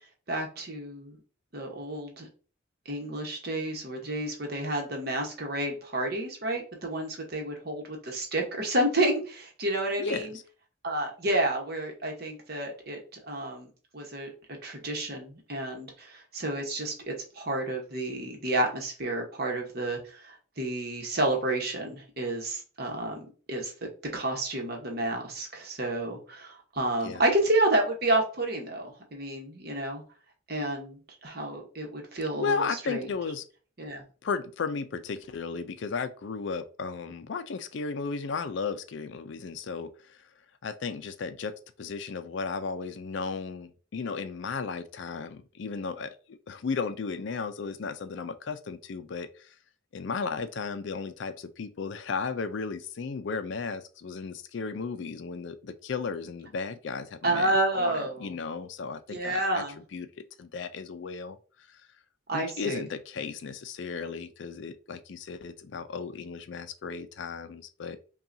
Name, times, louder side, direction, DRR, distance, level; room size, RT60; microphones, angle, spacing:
voice 1, 0.3-1.2 1.5-2.3 2.9-10.4 10.8-13.0 13.3-13.7 13.9-14.3 14.6-23.2 23.5-23.7 24.1-30.0 30.5-33.1 33.8-34.0 57.2-58.3 59.1-59.8 62.3-62.8, right 1 dB, 50° right, 1.1 m, -30 dB
voice 2, 10.0-10.4 27.0-27.2 32.4-33.4 34.2-40.2 40.6-49.5 49.9-59.6 59.9-60.1 60.4-61.4 61.7-61.8 62.3-68.0, left 5 dB, 60° left, 0.4 m, -35 dB
5.5 x 2.3 x 2.6 m
head